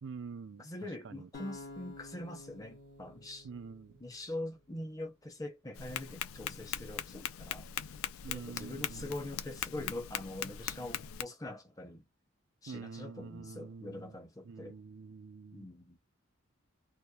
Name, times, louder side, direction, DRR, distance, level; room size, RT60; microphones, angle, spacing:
voice 1, 0.0-0.7 1.0-1.3 3.4-4.0 8.2-9.1 12.7-14.2 14.4-15.7, right 5 dB, 60° right, 0.4 m, -46 dB
voice 2, 0.6-3.5 4.0-7.7 8.3-12.1 12.6-14.8 15.5-16.0, left 1 dB, 15° left, 0.6 m, -43 dB
sound 1, 1.3-4.5, left 2 dB, 55° left, 0.9 m, -50 dB
Tap, 5.7-11.2, left 9 dB, 80° left, 0.4 m, -40 dB
2.9 x 2.2 x 2.2 m
head